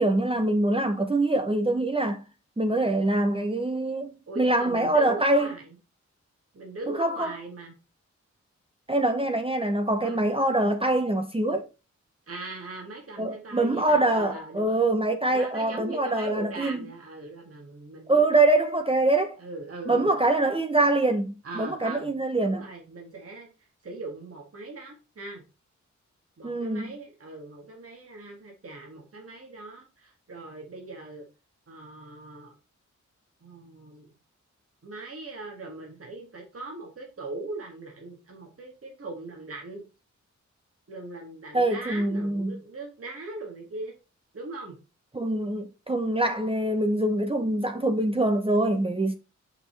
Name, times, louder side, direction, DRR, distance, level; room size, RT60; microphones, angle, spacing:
voice 1, 0.0-2.2 2.6-5.5 6.9-7.3 8.9-11.7 13.2-16.8 18.1-19.4 19.9-22.7 26.4-26.9 41.5-42.5 45.1-49.1, right 2 dB, 20° right, 0.8 m, -24 dB
voice 2, 4.3-5.8 6.5-7.7 10.0-10.2 12.3-14.9 15.3-18.4 19.4-20.1 21.4-22.1 22.4-25.4 26.4-31.2 31.7-32.6 33.4-34.1 34.8-39.8 40.9-43.9 44.3-44.8, right 2 dB, 50° right, 1.9 m, -40 dB
5.7 x 5.4 x 3.3 m
wide cardioid pair, 75°, 30 cm